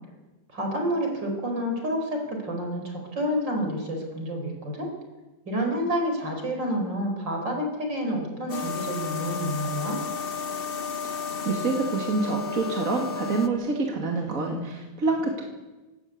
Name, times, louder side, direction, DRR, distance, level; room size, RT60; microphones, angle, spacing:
voice 1, 0.5-4.9 5.5-10.0, equal, 70° right, 2 dB, 5.5 m, -29 dB
sound 1, 8.5-13.5, left 5 dB, 35° left, 1.2 m, -33 dB
voice 2, 11.0-15.4, right 3 dB, 45° right, 1 dB, 2.7 m, -27 dB
27.0 x 13.5 x 8.4 m, 1.2 s
omnidirectional pair, 2.0 m